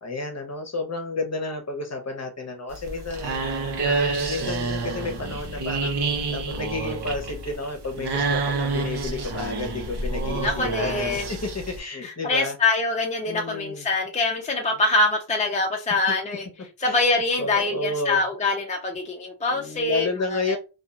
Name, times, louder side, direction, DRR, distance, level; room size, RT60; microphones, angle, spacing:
voice 1, 0.0-12.6 13.3-13.9 16.1-16.2 16.8-17.0 17.4-18.2 19.5-20.6, left 3 dB, 35° left, 0.8 m, -31 dB
sound 1, 2.7-11.8, right 3 dB, 65° right, 0.9 m, -28 dB
voice 2, 10.2-11.3 12.0-16.5 16.8-20.6, left 2 dB, 15° left, 0.5 m, -24 dB
2.8 x 2.4 x 2.4 m
wide cardioid pair, 110°, 44 cm